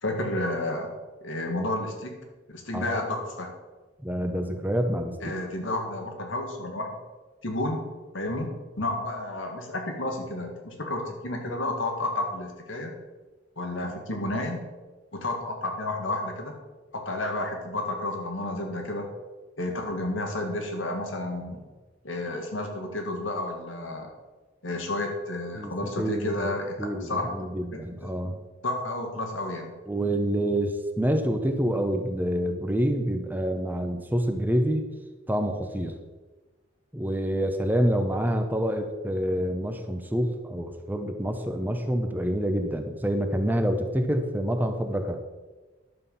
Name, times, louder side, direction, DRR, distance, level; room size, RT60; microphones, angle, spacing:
voice 1, 0.0-0.9 1.2-2.2 2.5-3.5 5.2-6.9 7.4-7.8 8.1-8.5 8.8-12.9 13.6-14.6 15.1-16.5 16.9-19.1 19.6-21.6 22.0-24.1 24.6-27.3 27.7-28.2 28.6-29.7, left 2 dB, 85° left, 3 dB, 2.0 m, -31 dB
voice 2, 4.0-5.3 25.6-26.5 26.8-28.4 29.9-34.9 35.3-35.9 36.9-45.2, equal, 10° right, 5 dB, 0.8 m, -27 dB
11.0 x 7.4 x 5.7 m, 1.2 s
head